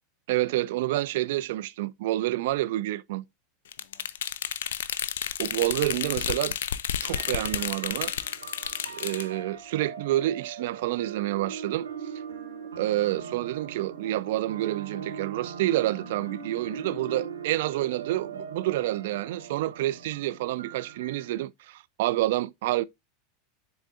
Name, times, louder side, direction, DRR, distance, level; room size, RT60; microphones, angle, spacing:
voice 1, 0.3-3.2 5.4-6.5 7.0-8.1 8.9-11.9 12.8-22.8, right 15 dB, 60° right, 0.4 m, -28 dB
sound 1, 3.7-9.3, left 9 dB, 70° left, 0.5 m, -31 dB
sound 2, 7.0-21.3, right 6 dB, 80° right, 1.0 m, -40 dB
9.8 x 4.0 x 2.5 m
figure-of-eight pair, 85°, 0 cm